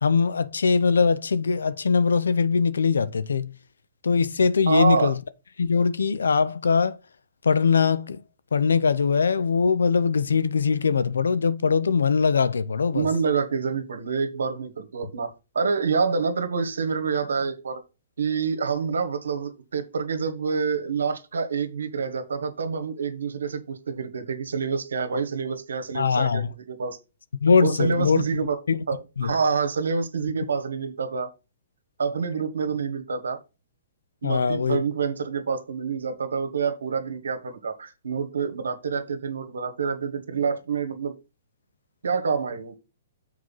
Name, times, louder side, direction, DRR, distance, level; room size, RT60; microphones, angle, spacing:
voice 1, 0.0-3.5 4.0-5.2 5.6-7.0 7.4-8.2 8.5-13.1 25.9-26.5 27.4-28.2 28.7-28.8 29.2-29.3 34.2-34.8, left 5 dB, 90° left, 0.7 m, -21 dB
voice 2, 4.7-5.1 12.9-17.8 18.2-27.0 27.6-28.6 28.9-31.3 32.0-33.4 34.2-41.1 42.0-42.8, right 5 dB, 85° right, 1.4 m, -27 dB
6.7 x 4.6 x 5.4 m
hypercardioid pair, 135°, 0 cm